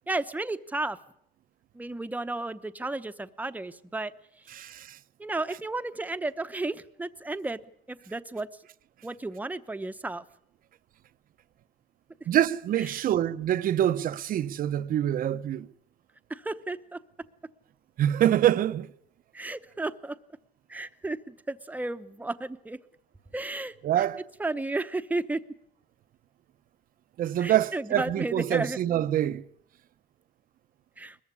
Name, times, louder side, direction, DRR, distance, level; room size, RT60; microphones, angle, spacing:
voice 1, 0.1-1.0 1.7-4.1 4.5-4.6 5.2-7.6 7.9-8.5 9.0-10.2 12.8-13.0 16.3-17.0 19.3-20.2 20.7-22.8 23.3-24.0 24.4-25.4 27.4-28.8 31.0-31.2, right 2 dB, 10° right, 0.9 m, -33 dB
voice 2, 4.5-5.0 12.3-15.7 18.0-18.9 23.8-24.2 27.2-29.4, right 11 dB, 55° right, 0.7 m, -25 dB
21.0 x 14.5 x 9.7 m
cardioid pair, 110°, 17 cm